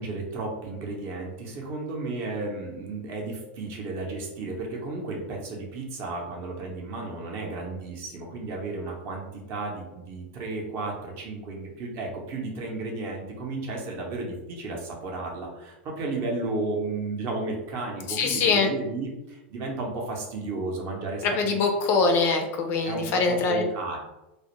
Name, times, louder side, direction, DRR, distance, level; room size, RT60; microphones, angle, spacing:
voice 1, 0.0-21.6 22.8-24.0, right 3 dB, 40° right, 0 dB, 0.7 m, -33 dB
voice 2, 18.1-18.7 21.2-23.6, left 4 dB, 40° left, 3 dB, 0.4 m, -23 dB
2.3 x 2.0 x 2.9 m, 0.98 s
supercardioid pair, 135°, 6 cm